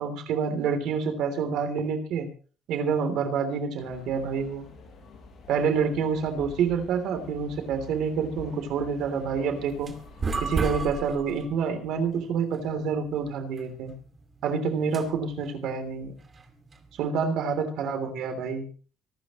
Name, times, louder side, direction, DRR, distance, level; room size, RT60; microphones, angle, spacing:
voice 1, 0.0-2.3 2.7-4.7 5.5-9.9 10.4-13.9 14.4-16.1 17.0-18.7, right 6 dB, 70° right, 7 dB, 3.4 m, -28 dB
sound 1, 3.8-10.4, left 3 dB, 50° left, 7.5 m, -48 dB
sound 2, 9.6-17.1, right 3 dB, 25° right, 2.4 m, -36 dB
25.0 x 13.0 x 3.1 m, 0.40 s
cardioid pair, 160°, 0 cm